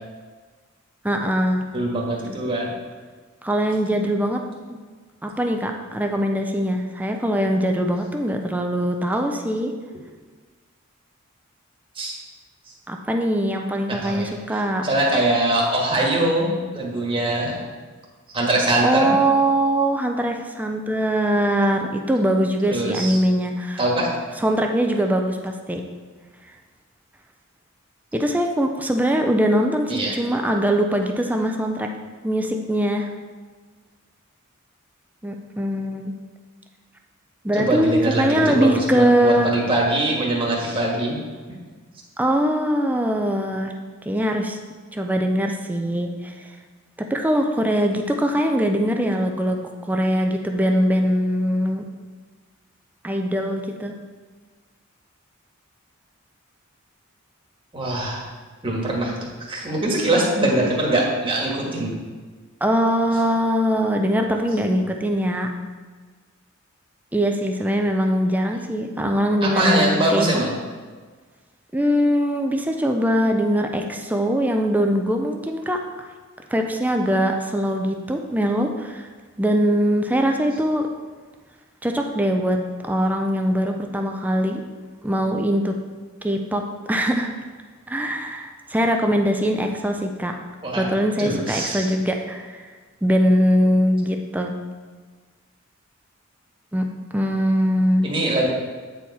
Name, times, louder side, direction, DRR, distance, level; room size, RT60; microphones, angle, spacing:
voice 1, 1.0-1.6 3.4-4.4 5.2-9.7 12.9-14.8 18.8-23.8 24.4-25.8 28.1-31.9 32.2-33.1 35.2-36.1 37.4-39.5 42.2-43.7 44.1-44.6 44.9-46.5 47.0-51.9 53.0-53.9 62.6-65.5 67.1-70.3 71.7-76.1 76.5-79.1 79.4-80.9 81.8-84.6 85.0-85.8 86.2-87.3 87.9-90.3 90.8-92.7 93.0-94.6 96.7-98.1, equal, 10° right, 3 dB, 0.5 m, -22 dB
voice 2, 1.7-2.7 11.9-12.2 13.9-14.3 14.8-17.6 18.3-19.1 22.7-23.2 23.8-24.1 29.9-30.1 37.5-41.2 57.7-58.2 58.6-59.1 59.5-61.9 69.4-70.5 90.6-90.9 91.2-91.9 98.0-98.5, right 1 dB, 25° right, -3 dB, 1.5 m, -22 dB
8.9 x 4.6 x 4.2 m, 1.4 s
head